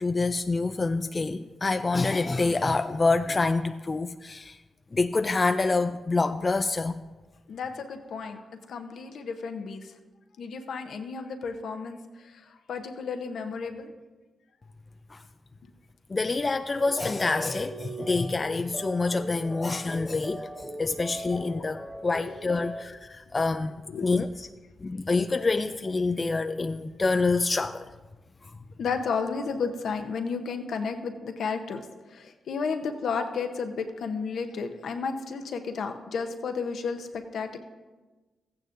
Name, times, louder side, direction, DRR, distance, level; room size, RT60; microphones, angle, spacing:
voice 1, 0.0-4.6 4.9-7.0 15.1-15.2 16.1-24.5 24.8-27.9, left 3 dB, 35° left, 8 dB, 0.3 m, -27 dB
voice 2, 7.5-8.4 8.7-9.9 10.4-13.9 23.9-24.1 28.8-37.6, left 5 dB, 75° left, 6 dB, 0.8 m, -32 dB
sound 1, 16.8-22.8, right 1 dB, 5° left, 1.6 m, -39 dB
14.0 x 9.3 x 2.6 m, 1.2 s
supercardioid pair, 50°, 0 cm